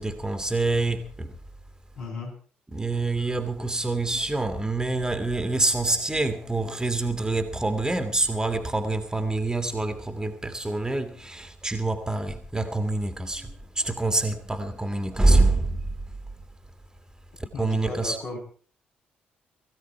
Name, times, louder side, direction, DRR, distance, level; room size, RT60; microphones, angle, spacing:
voice 1, 0.0-1.4 2.7-16.2 17.4-18.2, right 2 dB, 15° right, 2.0 m, -26 dB
voice 2, 2.0-2.3 17.5-18.4, left 3 dB, 65° left, 7.8 m, -35 dB
21.0 x 15.0 x 4.5 m
figure-of-eight pair, 45°, 5 cm